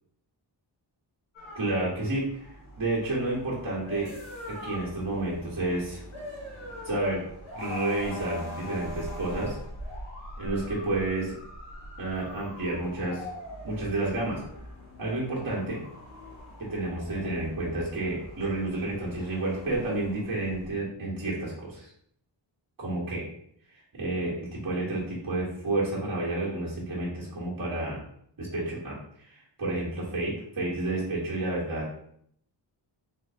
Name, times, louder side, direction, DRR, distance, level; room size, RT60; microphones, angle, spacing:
sound 1, 1.4-20.7, left 1 dB, 90° left, 1.2 m, -42 dB
voice 1, 1.5-2.5 2.8-4.1 4.5-6.0 6.8-7.2 7.5-9.5 10.4-11.3 12.0-13.3 13.6-14.4 15.0-15.8 16.6-21.9 22.8-23.2 23.7-28.0 28.4-31.9, right 2 dB, 45° right, -5 dB, 1.5 m, -30 dB
3.9 x 3.2 x 2.8 m, 0.67 s
wide cardioid pair, 125°, 46 cm